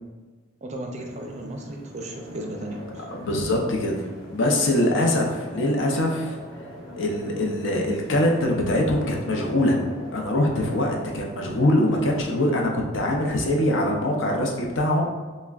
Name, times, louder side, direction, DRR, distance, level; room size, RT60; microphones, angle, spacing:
voice 1, 0.6-2.8, right 1 dB, 35° right, 2 dB, 0.4 m, -35 dB
sound 1, 0.9-12.6, equal, 20° left, 0.7 m, -42 dB
voice 2, 3.2-6.4 7.0-9.8 10.1-15.0, left 1 dB, 60° left, 0 dB, 0.6 m, -23 dB
5.7 x 2.1 x 2.3 m, 1.3 s
head